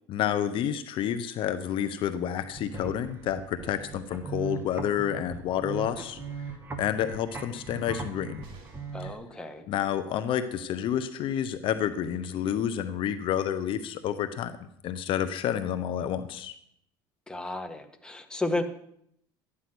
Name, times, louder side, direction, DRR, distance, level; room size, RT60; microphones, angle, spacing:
voice 1, 0.1-6.2 6.8-8.5 9.0-9.1 9.7-14.6 14.8-16.5, left 10 dB, 60° left, 11 dB, 0.9 m, -29 dB
sound 1, 2.4-9.1, right 4 dB, 25° right, 2.3 m, -39 dB
sound 2, 8.4-9.1 11.1-11.2 11.5-11.6, right 4 dB, 65° right, 5.6 m, -54 dB
voice 2, 8.9-9.7 17.3-18.6, left 2 dB, 10° left, 5 dB, 1.5 m, -33 dB
13.0 x 9.9 x 6.2 m, 0.71 s
supercardioid pair, 100°, 10 cm